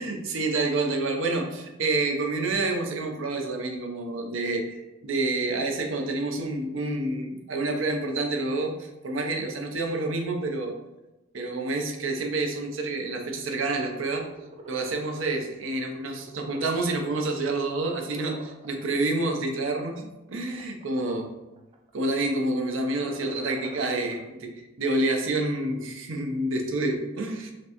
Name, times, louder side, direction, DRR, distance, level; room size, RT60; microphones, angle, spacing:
voice 1, 0.0-10.7 11.3-14.3 14.7-21.3 21.9-24.5 24.8-27.5, right 2 dB, 70° right, 3 dB, 0.6 m, -28 dB
sound 1, 14.2-15.1 15.5-15.8 16.1-17.3 17.7-18.8 19.5-19.9 20.5-21.3 21.6-22.1 22.9-24.2, right 1 dB, 25° right, 0.3 m, -45 dB
5.7 x 2.1 x 2.9 m, 0.98 s
head